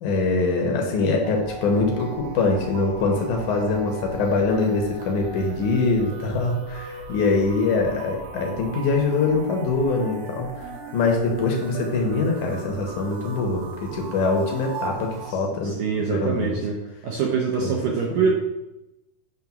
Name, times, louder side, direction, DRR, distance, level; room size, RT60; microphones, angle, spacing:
voice 1, 0.0-16.6 17.6-17.8, left 3 dB, 65° left, 1 dB, 2.0 m, -23 dB
sound 1, 1.2-15.3, right 4 dB, 90° right, 3.1 m, -38 dB
voice 2, 15.6-18.3, right 5 dB, 70° right, -1 dB, 2.3 m, -24 dB
9.5 x 3.3 x 6.0 m, 0.95 s
omnidirectional pair, 4.7 m